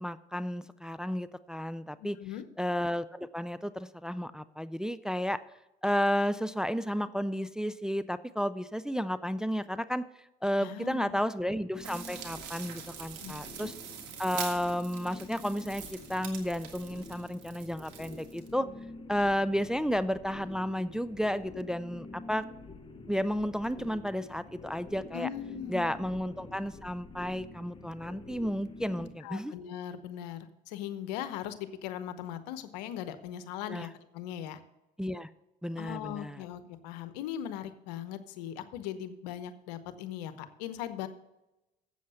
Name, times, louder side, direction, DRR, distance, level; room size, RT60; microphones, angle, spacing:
voice 1, 0.0-2.2 2.6-5.4 5.8-10.0 10.4-13.7 14.2-18.7 19.1-22.5 23.1-25.3 25.7-29.5 33.7-33.9 35.0-35.3 35.6-36.4, equal, 5° right, 14 dB, 0.4 m, -32 dB
voice 2, 2.0-2.4 10.6-11.2 13.2-13.7 25.1-26.0 29.2-34.6 35.8-41.1, left 10 dB, 80° left, 11 dB, 0.9 m, -39 dB
sound 1, 11.7-29.1, left 2 dB, 25° left, 1.3 m, -48 dB
sound 2, 11.8-18.5, right 8 dB, 80° right, 1.8 m, -44 dB
7.7 x 7.4 x 6.9 m, 0.94 s
hypercardioid pair, 70°, 21 cm